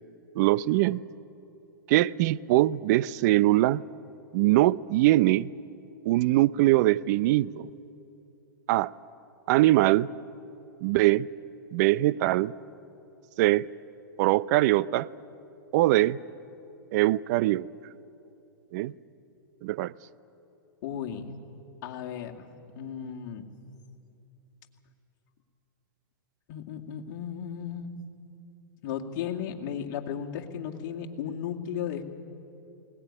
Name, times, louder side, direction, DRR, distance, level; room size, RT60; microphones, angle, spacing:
voice 1, 0.4-1.0 1.9-3.8 4.3-5.5 6.1-7.7 8.7-8.9 9.5-10.1 10.8-11.3 11.7-12.5 13.4-13.7 14.2-15.1 15.7-16.2 16.9-17.7 18.7-18.9 19.6-19.9, right 17 dB, 50° right, 0.6 m, -22 dB
voice 2, 20.8-21.3 21.8-23.4 26.5-28.0 28.8-32.0, left 8 dB, 55° left, 2.3 m, -35 dB
20.5 x 18.5 x 10.0 m
hypercardioid pair, 120°, 12 cm